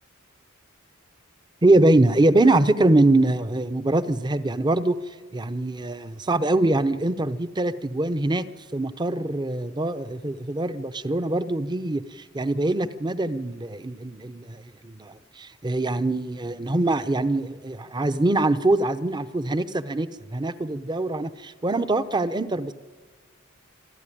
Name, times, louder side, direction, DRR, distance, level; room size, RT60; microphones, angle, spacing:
voice 1, 1.6-5.0 5.3-22.7, right 2 dB, 20° right, 13 dB, 0.7 m, -23 dB
26.0 x 13.0 x 9.9 m, 1.5 s
head